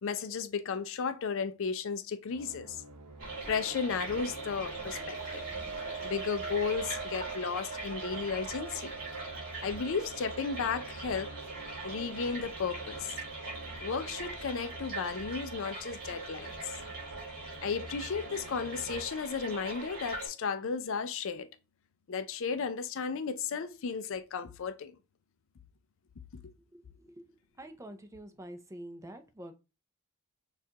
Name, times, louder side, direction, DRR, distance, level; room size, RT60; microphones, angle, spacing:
voice 1, 0.0-2.8 3.5-5.4 6.0-8.9 9.6-11.3 11.8-13.1 13.8-16.7 17.6-21.5 22.1-24.9, left 5 dB, 60° left, 0.4 m, -34 dB
sound 1, 2.3-19.1, right 2 dB, 80° right, 0.7 m, -50 dB
sound 2, 3.2-20.3, right 3 dB, 40° right, 2.4 m, -41 dB
sound 3, 4.4-12.8, right 5 dB, 55° right, 1.4 m, -45 dB
voice 2, 27.6-29.6, right 1 dB, 15° right, 0.5 m, -46 dB
6.4 x 2.4 x 2.8 m
head